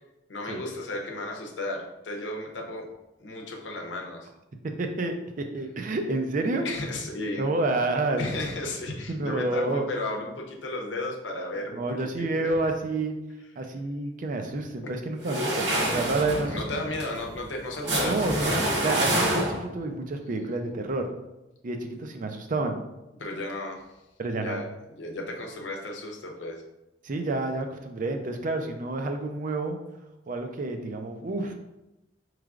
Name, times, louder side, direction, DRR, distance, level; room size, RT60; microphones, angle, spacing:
voice 1, 0.3-2.9 3.2-4.3 6.6-7.4 8.2-12.6 16.5-18.3 23.2-23.8 24.4-24.7 25.0-26.6, left 1 dB, 90° left, 0 dB, 0.8 m, -34 dB
voice 2, 4.6-6.7 7.4-8.2 9.1-9.9 11.7-13.2 13.6-16.8 18.0-18.5 18.8-21.1 21.6-22.8 24.2-24.6 27.0-29.8 30.3-31.6, right 2 dB, 45° right, 5 dB, 0.5 m, -29 dB
sound 1, 15.2-19.8, right 1 dB, 75° right, 1.1 m, -27 dB
4.7 x 3.2 x 2.4 m, 0.95 s
head